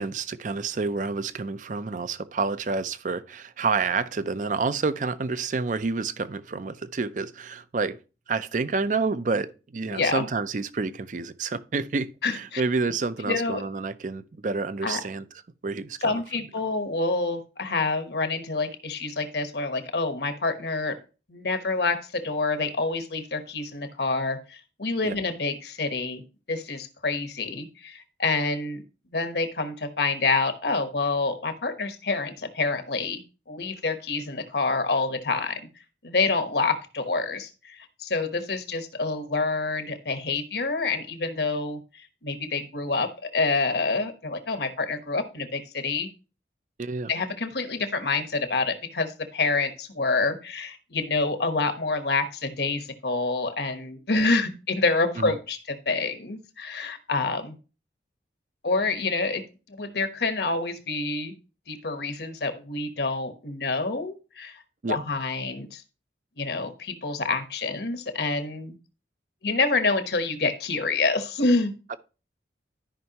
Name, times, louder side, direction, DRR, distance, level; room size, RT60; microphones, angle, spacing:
voice 1, 0.0-8.0 8.3-15.2 15.6-16.1 25.0-25.2 46.8-47.1 55.2-55.3 64.8-65.0 71.9-72.0, right 4 dB, 45° right, 0.5 m, -29 dB
voice 2, 9.9-10.3 12.2-12.6 13.3-13.6 14.8-15.0 16.0-21.0 21.3-26.2 26.5-28.8 29.1-33.2 33.5-35.7 36.0-46.1 47.1-57.5 58.6-59.4 59.7-61.3 61.7-64.6 64.9-65.8 66.4-68.8 69.4-71.7, left 3 dB, 70° left, 1.1 m, -27 dB
13.0 x 5.5 x 2.9 m
head